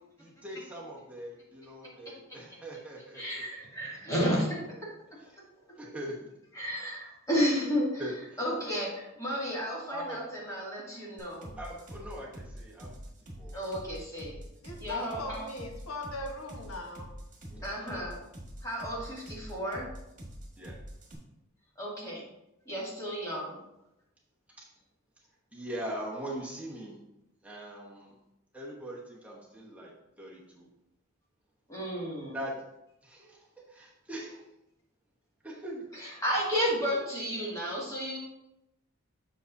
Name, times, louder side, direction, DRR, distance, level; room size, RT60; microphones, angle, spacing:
voice 1, 0.2-3.4 5.8-6.3 8.0-8.4 9.9-10.2 11.6-13.0 13.4-13.5 17.5-18.0 20.6-20.8 24.6-24.7 25.5-27.0 27.4-28.1 28.5-29.9 30.2-30.7 32.3-32.6 33.0-33.5 34.1-34.4 35.4-35.8, right 1 dB, 5° right, -4 dB, 1.1 m, -41 dB
voice 2, 3.2-4.6 6.5-8.0 8.4-11.5 13.5-14.4 14.8-15.5 17.6-18.2 18.6-19.9 21.8-22.2 22.7-23.6 31.7-32.4 36.0-38.2, equal, 15° left, -6 dB, 2.5 m, -32 dB
sound 1, 11.2-21.1, equal, 40° right, 1.8 m, -45 dB
voice 3, 14.6-17.1, left 2 dB, 90° left, 1 dB, 1.4 m, -39 dB
7.5 x 6.4 x 2.7 m, 0.88 s
head